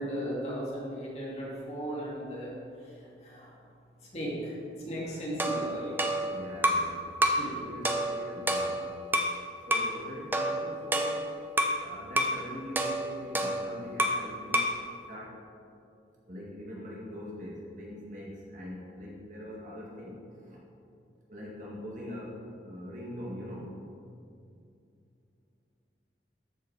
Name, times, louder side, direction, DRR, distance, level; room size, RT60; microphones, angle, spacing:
voice 1, 0.0-3.5 4.1-4.6 4.9-6.0 7.3-7.6, equal, 35° left, -6 dB, 2.6 m, -36 dB
sound 1, 5.4-6.9 7.2-7.5 7.9-9.4 9.7-10.0 10.3-11.8 12.2-12.4 12.8-14.3 14.5-14.8, right 1 dB, 10° right, 0.6 m, -28 dB
voice 2, 6.2-7.1 7.6-8.8 9.7-11.3 11.8-14.6 15.1-15.4 16.3-20.6 21.3-23.8, equal, 45° right, -4 dB, 2.0 m, -42 dB
13.0 x 6.4 x 4.8 m, 2.5 s
head